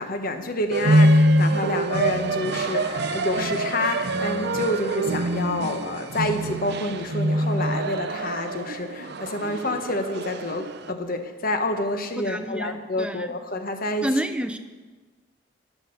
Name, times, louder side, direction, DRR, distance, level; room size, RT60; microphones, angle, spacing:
voice 1, 0.0-14.1, left 2 dB, 45° left, 7 dB, 1.2 m, -28 dB
sound 1, 0.7-10.9, right 1 dB, 50° right, 0.6 m, -24 dB
sound 2, 2.6-8.3, left 2 dB, 20° left, 2.8 m, -45 dB
voice 2, 12.2-13.3 14.0-14.6, right 1 dB, 5° right, 8 dB, 0.7 m, -29 dB
12.0 x 11.5 x 6.6 m, 1.3 s
head